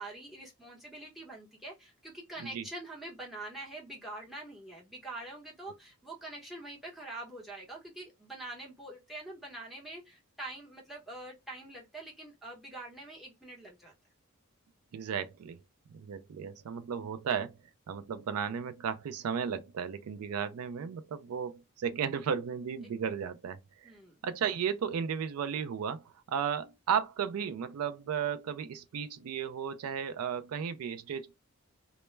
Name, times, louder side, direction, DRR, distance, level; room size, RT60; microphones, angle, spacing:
voice 1, 0.0-13.9 23.8-24.2, right 2 dB, ahead, 0.8 m, -45 dB
voice 2, 14.9-15.6 15.9-17.6 17.9-23.9 24.2-31.4, right 7 dB, 85° right, 0.4 m, -34 dB
2.1 x 2.0 x 3.1 m
head